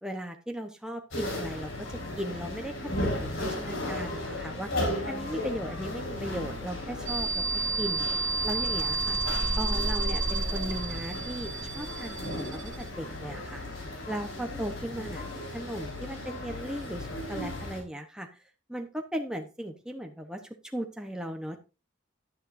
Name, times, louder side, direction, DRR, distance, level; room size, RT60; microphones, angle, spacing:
voice 1, 0.0-7.4 7.8-8.1 8.4-9.2 9.6-13.6 14.1-18.3 18.7-20.4 20.7-21.6, equal, 5° right, 4 dB, 0.8 m, -37 dB
sound 1, 1.1-17.8, left 1 dB, 80° left, 4.6 m, -36 dB
sound 2, 7.1-12.9, right 3 dB, 65° right, 1.5 m, -30 dB
10.5 x 9.7 x 2.6 m, 0.29 s
head